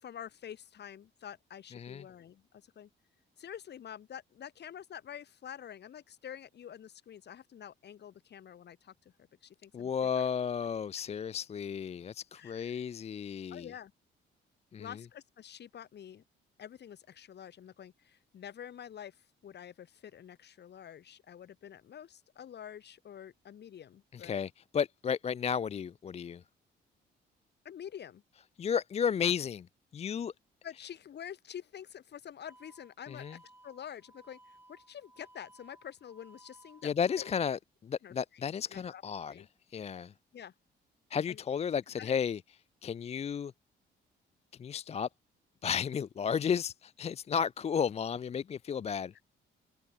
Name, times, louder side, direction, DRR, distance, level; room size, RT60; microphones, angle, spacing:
voice 1, 0.0-2.9 3.4-8.9 9.4-10.3 12.4-12.8 13.5-13.9 14.8-16.2 16.6-24.4 27.6-28.2 30.6-36.9 37.2-37.3 38.0-39.0 39.3-39.5 40.3-40.5 41.3-41.4 42.0-42.2, left 9 dB, 60° left, 2.1 m, -48 dB
voice 2, 9.7-13.7 14.7-14.9 24.2-26.4 28.6-29.6 29.9-30.3 33.2-33.3 36.8-39.3 39.7-40.1 41.1-42.4 42.8-43.5 44.6-45.1 45.6-49.1, left 7 dB, 30° left, 0.4 m, -33 dB
sound 1, 32.5-37.5, right 1 dB, 10° right, 6.9 m, -60 dB
cardioid pair, 90°, 20 cm